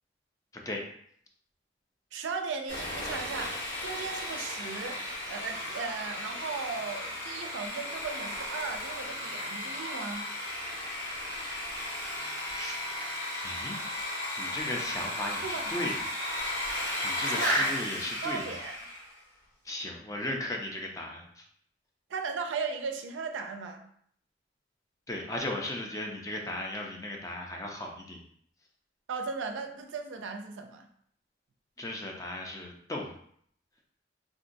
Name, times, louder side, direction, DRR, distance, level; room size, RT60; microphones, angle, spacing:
voice 1, 2.1-5.0 5.3-10.3 15.4-15.7 17.2-17.8 18.2-18.8 22.1-23.8 29.1-30.9, right 5 dB, 90° right, 5 dB, 0.4 m, -36 dB
Sawing, 2.7-19.1, left 1 dB, 80° left, 1.4 m, -35 dB
voice 2, 13.4-13.8 14.4-15.9 17.0-18.4 19.6-21.4 25.1-28.2 31.8-33.1, left 1 dB, 20° left, 0 dB, 0.4 m, -36 dB
3.7 x 2.1 x 2.5 m, 0.64 s
head